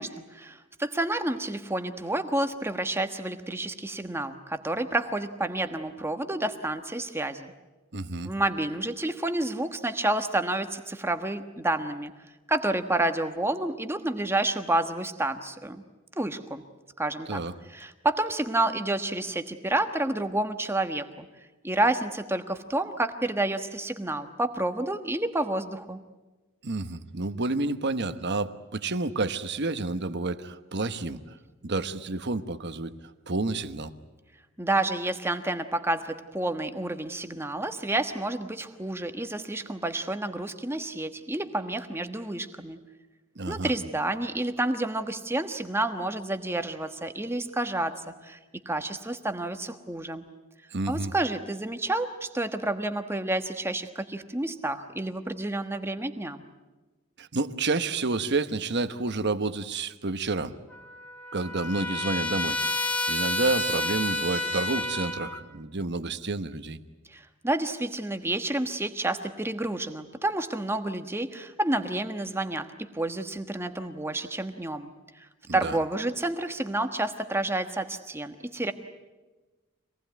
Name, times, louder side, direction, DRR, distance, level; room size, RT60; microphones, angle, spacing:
voice 1, 0.0-7.5 8.2-12.1 12.5-15.8 16.2-16.6 17.0-17.4 17.7-21.3 21.6-26.0 34.6-42.8 43.5-48.4 48.6-50.2 50.9-56.4 67.1-74.9 75.2-78.7, right 2 dB, 10° right, 7 dB, 1.3 m, -29 dB
voice 2, 7.9-8.3 17.3-17.5 26.6-31.4 31.6-33.0 33.3-33.9 43.4-43.7 50.7-51.1 57.2-60.6 61.3-62.6 63.1-66.8 75.5-75.8, right 3 dB, 50° right, 11 dB, 1.1 m, -30 dB
Trumpet, 60.7-65.4, left 2 dB, 5° left, 1.9 m, -30 dB
26.0 x 19.0 x 9.3 m, 1.2 s
head